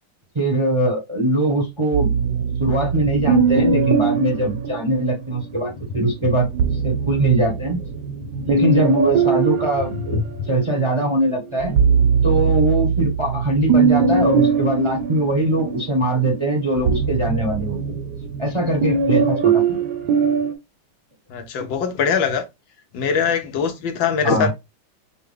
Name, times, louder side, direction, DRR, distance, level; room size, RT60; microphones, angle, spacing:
voice 1, 0.3-2.1 2.6-6.5 6.8-7.8 8.4-10.2 10.5-11.8 12.2-18.0 18.4-19.8 24.2-24.5, right 1 dB, 20° right, 0.8 m, -21 dB
sound 1, 1.9-5.4 6.4-10.8 11.3-20.5, right 5 dB, 65° right, 1.3 m, -21 dB
voice 2, 21.3-22.4 22.9-24.5, left 6 dB, 80° left, 1.6 m, -22 dB
6.0 x 2.2 x 3.3 m
omnidirectional pair, 2.0 m